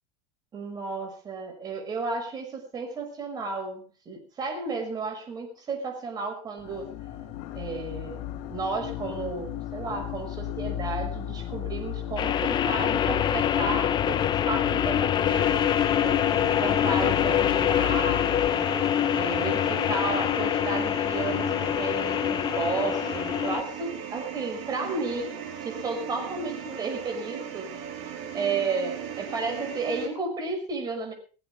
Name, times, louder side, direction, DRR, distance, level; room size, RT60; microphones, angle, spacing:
voice 1, 0.5-6.9 7.5-16.2 16.6-18.6 19.1-21.5 21.8-25.3 25.6-27.7 28.3-31.1, right 4 dB, 25° right, 4 dB, 5.8 m, -33 dB
sound 1, 6.6-18.5, left 11 dB, 50° left, 3.9 m, -35 dB
sound 2, 12.2-23.6, left 10 dB, 30° left, 0.9 m, -25 dB
sound 3, 15.3-30.1, right 8 dB, 65° right, 4.9 m, -38 dB
21.0 x 15.5 x 3.6 m, 0.35 s
supercardioid pair, 135°, 15 cm